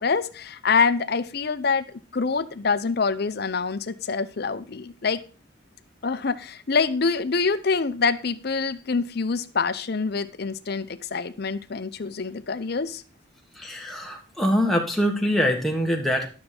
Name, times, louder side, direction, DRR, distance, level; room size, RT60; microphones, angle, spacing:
voice 1, 0.0-5.2 6.0-13.0, left 4 dB, 50° left, 13 dB, 0.6 m, -25 dB
voice 2, 13.6-16.3, equal, ahead, 0 dB, 1.4 m, -24 dB
11.5 x 6.6 x 4.3 m, 0.37 s
head